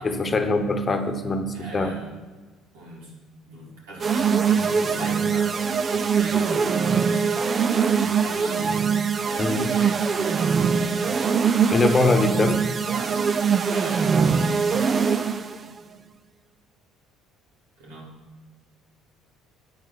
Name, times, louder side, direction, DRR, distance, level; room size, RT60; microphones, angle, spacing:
voice 1, 0.0-1.9 9.4-9.7 11.7-12.6, left 3 dB, 30° left, 8 dB, 1.2 m, -23 dB
voice 2, 1.5-2.2 2.7-9.0 9.3-11.7 12.9-14.2 17.8-18.2, right 1 dB, 85° right, -4 dB, 3.1 m, -40 dB
sound 1, 4.0-15.6, right 6 dB, 40° right, 0.6 m, -22 dB
11.0 x 7.6 x 4.2 m, 1.3 s
hypercardioid pair, 65°, 0 cm